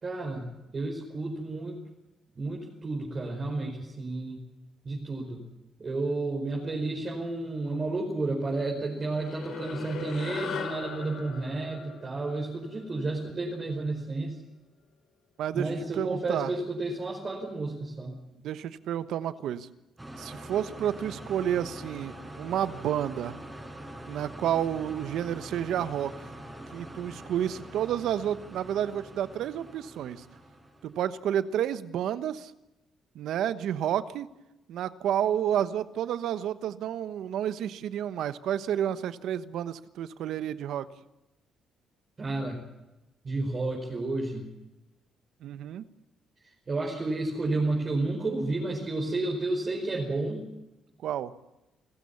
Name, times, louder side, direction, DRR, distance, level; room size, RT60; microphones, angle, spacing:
voice 1, 0.0-1.8 2.4-4.4 4.8-5.4 5.8-14.4 15.5-18.2 42.2-42.6 43.2-44.5 46.7-50.4, right 2 dB, 35° right, -2 dB, 5.0 m, -31 dB
sound 1, 9.0-13.7, left 7 dB, 75° left, 3.8 m, -40 dB
voice 2, 15.4-16.5 18.4-19.7 20.2-23.4 24.1-26.1 26.7-30.2 30.8-32.5 33.1-34.3 34.7-40.9 45.4-45.8 51.0-51.3, right 10 dB, 80° right, 13 dB, 1.2 m, -30 dB
sound 2, 20.0-31.2, right 1 dB, 10° right, 5.6 m, -44 dB
28.0 x 15.5 x 7.1 m, 0.97 s
cardioid pair, 90°, 0 cm